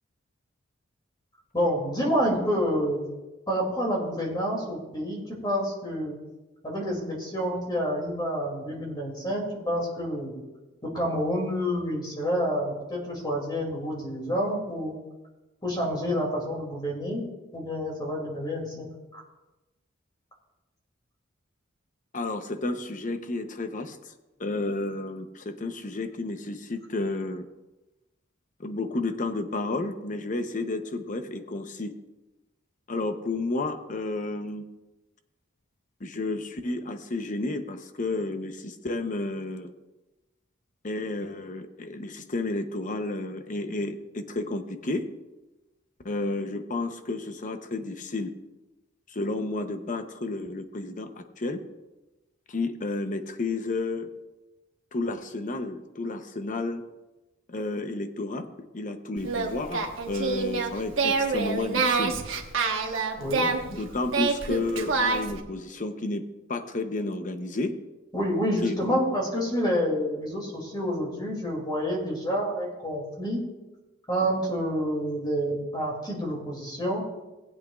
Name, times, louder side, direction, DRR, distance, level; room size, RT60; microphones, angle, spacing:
voice 1, 1.5-3.1 3.5-6.2 6.6-10.4 10.8-14.9 15.6-17.2 17.5-18.9 19.1-19.2 63.2-63.5 68.1-73.4 74.1-77.0, equal, 25° left, -2 dB, 2.6 m, -28 dB
voice 2, 22.1-24.1 24.4-27.5 28.6-31.9 32.9-34.6 36.0-39.7 40.8-45.1 46.0-48.3 49.1-51.6 52.5-54.1 54.9-56.8 57.5-58.5 58.7-62.1 63.7-66.2 66.5-67.8 68.6-68.7, left 2 dB, 40° left, 7 dB, 0.8 m, -31 dB
Singing, 59.2-65.4, right 4 dB, 75° right, 1.2 m, -27 dB
18.5 x 8.5 x 2.4 m, 1.1 s
head